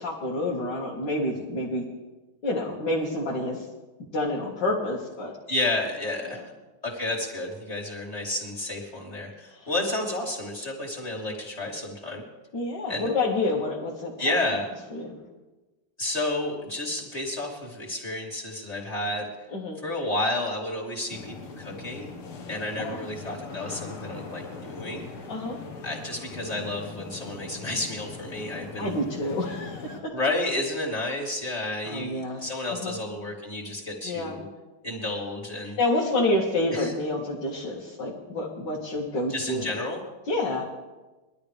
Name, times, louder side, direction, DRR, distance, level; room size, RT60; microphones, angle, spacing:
voice 1, 0.0-1.9 2.4-3.6 4.1-5.3 6.3-6.4 9.6-9.7 12.5-14.3 14.9-15.1 19.5-19.8 22.8-23.0 25.3-25.6 28.8-30.0 31.8-32.4 32.7-33.0 34.0-34.3 35.8-39.7 40.3-40.6, left 2 dB, 55° left, -5 dB, 2.5 m, -28 dB
voice 2, 5.5-6.5 6.8-12.2 12.9-13.1 14.2-14.7 16.0-19.3 19.8-22.1 22.5-25.1 25.8-28.9 30.1-34.4 34.8-35.8 36.7-36.9 39.3-40.0, left 2 dB, 15° left, -4 dB, 2.9 m, -31 dB
sound 1, 21.1-30.0, left 4 dB, 80° left, 2.3 m, -41 dB
22.0 x 12.5 x 3.5 m, 1.2 s
omnidirectional pair, 2.4 m